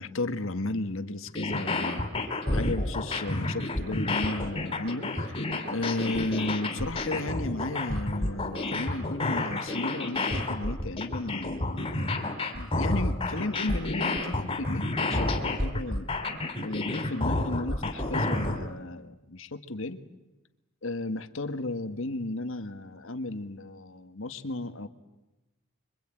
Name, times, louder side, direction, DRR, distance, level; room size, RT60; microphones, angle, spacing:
voice 1, 0.0-2.1 2.5-5.4 5.7-12.1 12.5-16.1 16.6-20.0 20.8-24.9, left 2 dB, 70° left, 9 dB, 1.5 m, -34 dB
sound 1, 1.3-18.6, left 2 dB, 25° left, 3.1 m, -30 dB
26.0 x 24.0 x 9.0 m, 1.0 s
head